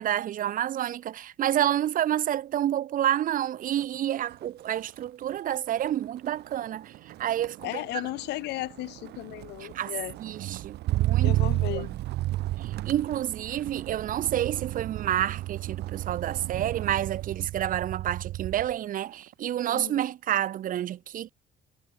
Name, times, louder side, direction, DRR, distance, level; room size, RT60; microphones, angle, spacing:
voice 1, 0.0-8.0 9.6-9.9 10.2-11.3 11.7-12.0 12.6-21.3, right 11 dB, 55° right, 0.9 m, -29 dB
Motor vehicle (road), 3.6-4.0 4.3-18.7 19.1-19.6, right 16 dB, 75° right, 3.9 m, -33 dB
voice 2, 7.6-10.2 11.2-11.9 19.7-20.0, left 18 dB, 85° left, 3.3 m, -35 dB
cardioid pair, 110°, 17 cm